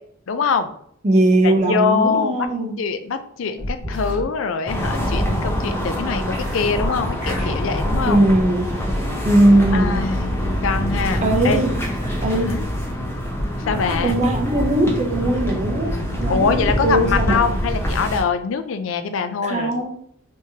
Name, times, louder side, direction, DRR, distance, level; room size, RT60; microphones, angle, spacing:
voice 1, 0.3-0.7 1.4-2.3 2.8-8.2 9.7-10.3 10.6-11.7 12.3-12.7 13.7-14.2 16.3-19.7, left 5 dB, 65° left, 9 dB, 0.4 m, -23 dB
voice 2, 1.0-2.8 8.1-8.7 9.2-10.0 11.2-11.7 12.2-12.5 14.0-15.9 16.2-17.4 19.4-19.9, right 1 dB, 35° right, 1 dB, 0.7 m, -19 dB
sound 1, 3.6-4.2 6.2-7.6, equal, 10° right, 1.3 m, -31 dB
sound 2, 4.7-18.2, equal, 10° left, 0.7 m, -24 dB
3.6 x 3.1 x 2.8 m, 0.64 s
head